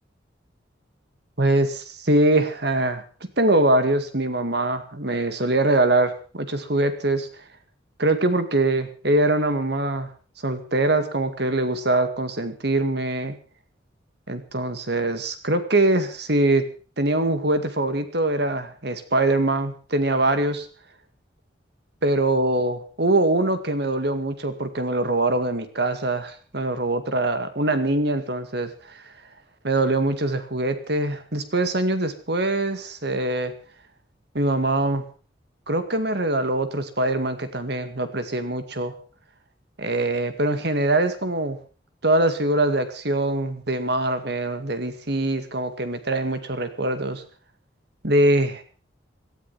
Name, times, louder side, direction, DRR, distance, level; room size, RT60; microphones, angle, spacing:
voice 1, 1.4-3.0 3.4-7.3 8.0-10.1 10.4-13.4 14.3-16.7 17.0-20.7 22.0-29.0 29.6-33.5 34.3-35.0 35.7-39.0 39.8-41.6 42.0-47.2 48.0-48.6, right 2 dB, 60° right, 9 dB, 2.1 m, -23 dB
18.0 x 13.0 x 5.7 m, 0.38 s
head